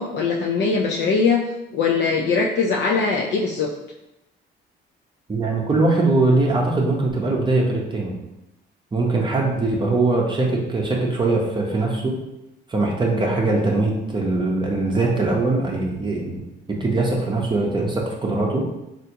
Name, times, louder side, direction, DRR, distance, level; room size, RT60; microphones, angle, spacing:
voice 1, 0.0-1.4 1.7-3.7, left 4 dB, 65° left, -2 dB, 0.4 m, -21 dB
voice 2, 5.3-8.1 8.9-12.2 12.7-16.4 16.7-18.7, right 2 dB, 25° right, -1 dB, 0.6 m, -21 dB
3.3 x 2.5 x 2.8 m, 0.90 s
cardioid pair, 90°, 20 cm